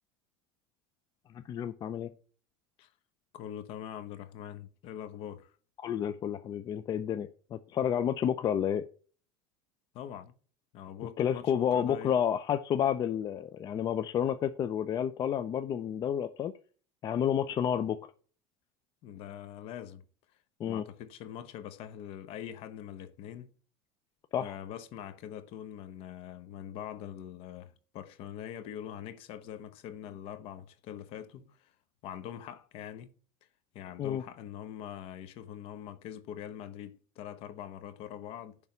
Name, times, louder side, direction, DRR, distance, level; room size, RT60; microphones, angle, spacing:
voice 1, 1.3-2.1 5.8-8.8 11.2-16.5 17.0-18.0 20.6-20.8 24.3-24.5 34.0-34.2, left 9 dB, 35° left, 0.5 m, -30 dB
voice 2, 3.3-5.5 9.9-10.3 10.7-12.1 19.0-20.0 20.7-23.5 24.4-31.7 32.0-33.1 33.7-38.6, left 10 dB, 50° left, 1.1 m, -43 dB
10.5 x 3.6 x 6.9 m
supercardioid pair, 120°, 12 cm